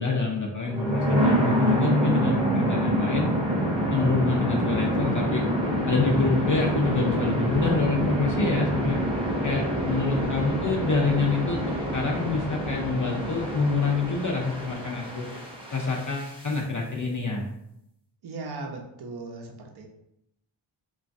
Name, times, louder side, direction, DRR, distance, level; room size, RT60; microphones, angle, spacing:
voice 1, 0.0-3.3 3.9-5.4 5.9-9.0 9.4-15.3 15.7-17.5, left 4 dB, 40° left, -1 dB, 0.5 m, -26 dB
sound 1, 0.6-16.6, equal, 10° right, 0.7 m, -26 dB
voice 2, 18.2-19.9, right 3 dB, 55° right, 1 dB, 0.6 m, -37 dB
3.0 x 2.3 x 2.5 m, 0.80 s
wide cardioid pair, 75°, 48 cm